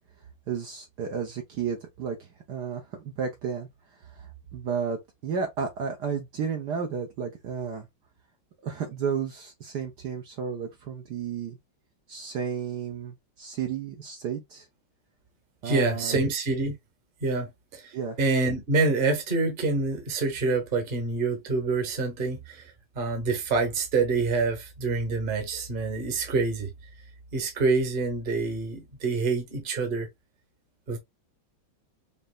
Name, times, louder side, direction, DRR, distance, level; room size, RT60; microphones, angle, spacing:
voice 1, 0.5-3.7 4.0-7.9 8.6-11.6 12.1-14.7 15.6-16.2 17.9-18.2, right 6 dB, 60° right, 1.3 m, -32 dB
voice 2, 15.6-16.7 17.2-26.7 27.3-30.1 30.9-31.0, right 3 dB, 30° right, 1.2 m, -27 dB
5.4 x 2.9 x 2.3 m
omnidirectional pair, 2.3 m